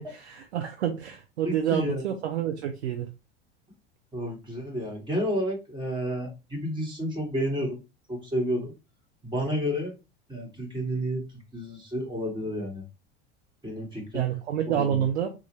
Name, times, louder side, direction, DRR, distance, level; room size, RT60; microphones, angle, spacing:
voice 1, 0.0-3.1 14.1-15.3, right 9 dB, 90° right, 0.6 m, -28 dB
voice 2, 1.4-2.0 4.1-7.8 8.1-8.7 9.2-9.9 10.3-11.2 11.5-12.8 13.6-14.3 14.7-15.1, equal, 15° right, 2.0 m, -30 dB
3.7 x 2.5 x 3.1 m
hypercardioid pair, 95°, 32 cm